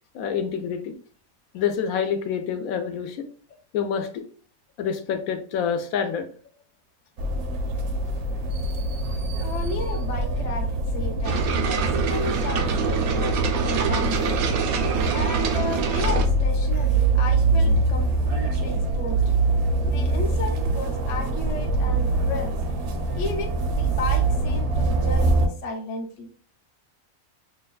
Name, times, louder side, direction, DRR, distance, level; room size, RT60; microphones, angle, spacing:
voice 1, 0.1-1.0 1.5-3.2 3.7-4.2 4.8-6.3, left 7 dB, 80° left, 6 dB, 1.0 m, -27 dB
sound 1, 7.2-25.5, right 2 dB, 60° right, 0.9 m, -24 dB
voice 2, 9.3-14.4 15.1-19.2 19.8-22.5 23.1-26.3, left 2 dB, 40° left, 1 dB, 0.6 m, -33 dB
sound 2, 11.2-16.3, right 5 dB, 85° right, 1.0 m, -25 dB
5.6 x 2.2 x 2.3 m, 0.43 s
omnidirectional pair, 1.5 m